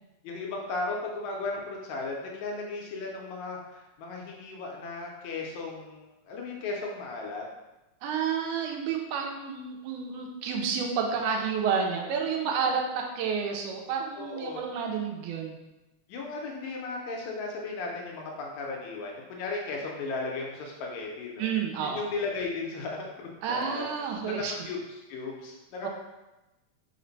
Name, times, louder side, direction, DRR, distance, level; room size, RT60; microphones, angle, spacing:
voice 1, 0.2-7.4 12.4-12.5 14.2-14.7 16.1-21.5 21.8-23.9 24.3-24.8 25.1-25.9, left 3 dB, 80° left, -1 dB, 2.0 m, -36 dB
voice 2, 8.0-15.6 21.4-22.1 23.4-24.7 25.8-25.9, right 6 dB, 90° right, 1 dB, 2.1 m, -30 dB
5.0 x 2.1 x 3.9 m, 1.0 s
omnidirectional pair, 3.4 m